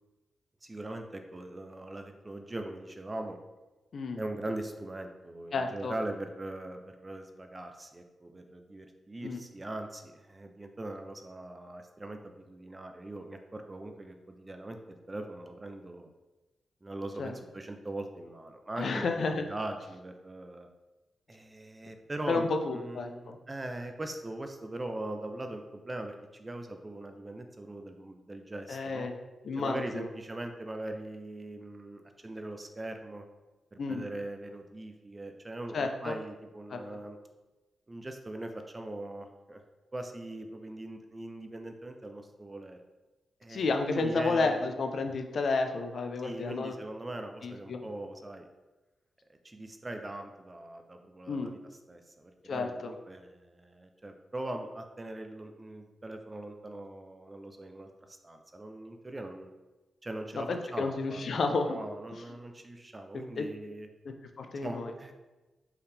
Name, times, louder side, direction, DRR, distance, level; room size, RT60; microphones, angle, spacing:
voice 1, 0.6-3.4 4.1-16.1 16.8-19.1 19.4-20.7 21.3-29.1 29.6-33.2 33.7-37.2 37.9-39.6 39.9-42.8 43.4-44.7 46.2-48.5 49.4-51.6 51.9-59.5 60.0-61.2 61.7-63.9 64.6-65.1, right 1 dB, 20° right, 5 dB, 0.3 m, -41 dB
voice 2, 5.5-5.9 9.2-9.4 17.2-17.3 18.8-19.4 22.3-23.4 28.7-29.1 29.4-30.1 33.8-34.0 35.7-36.1 36.7-36.8 43.5-46.7 47.4-47.8 51.3-51.5 52.5-52.9 60.3-61.8 62.1-62.2 63.1-63.5 64.0-64.9, left 3 dB, 55° left, 5 dB, 0.4 m, -31 dB
4.6 x 3.5 x 3.3 m, 1.1 s
wide cardioid pair, 170°, 0 cm